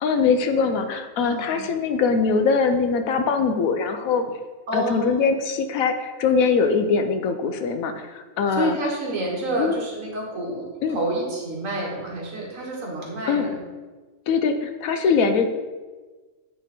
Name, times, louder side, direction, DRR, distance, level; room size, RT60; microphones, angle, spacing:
voice 1, 0.0-4.2 4.7-8.8 9.6-9.8 10.8-11.0 13.3-13.5 14.3-15.5, left 5 dB, 75° left, 7 dB, 1.0 m, -22 dB
voice 2, 1.2-1.6 4.7-5.2 8.5-13.6, right 1 dB, 65° right, -2 dB, 1.8 m, -29 dB
9.4 x 3.5 x 4.2 m, 1.3 s
omnidirectional pair, 1.5 m